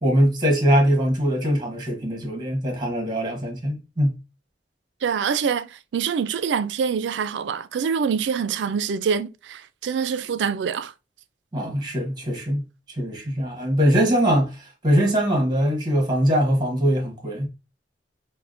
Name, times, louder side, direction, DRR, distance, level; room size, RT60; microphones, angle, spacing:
voice 1, 0.0-4.1 11.5-17.5, equal, 25° right, 1.2 m, -22 dB
voice 2, 5.0-10.9, right 6 dB, 85° right, 0.3 m, -25 dB
5.4 x 2.1 x 2.5 m
head